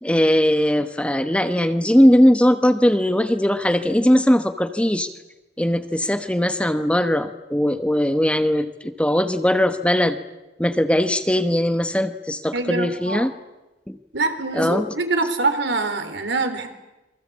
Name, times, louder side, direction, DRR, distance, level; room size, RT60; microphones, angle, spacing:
voice 1, 0.0-5.1 5.6-10.2 10.6-13.3 13.9-14.0 14.5-14.9, equal, 5° left, 9 dB, 1.1 m, -19 dB
voice 2, 12.5-13.3 14.1-16.7, right 3 dB, 65° right, 7 dB, 3.7 m, -24 dB
27.5 x 23.0 x 8.6 m, 1.0 s
head